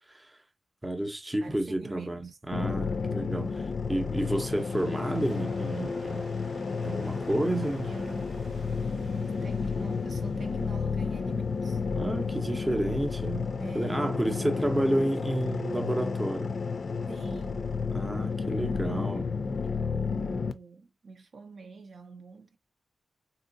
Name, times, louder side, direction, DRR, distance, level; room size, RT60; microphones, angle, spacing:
voice 1, 0.8-6.3 6.8-7.9 11.9-16.6 17.9-19.3, right 1 dB, 15° right, 0.6 m, -31 dB
voice 2, 1.4-2.4 7.8-8.4 9.2-11.8 13.6-14.5 17.1-17.8 19.6-22.6, right 4 dB, 70° right, 0.6 m, -47 dB
sound 1, 2.5-20.5, left 5 dB, 65° left, 0.4 m, -31 dB
sound 2, 4.2-15.7, right 2 dB, 85° right, 1.4 m, -51 dB
3.8 x 2.7 x 2.5 m
wide cardioid pair, 100°, 0 cm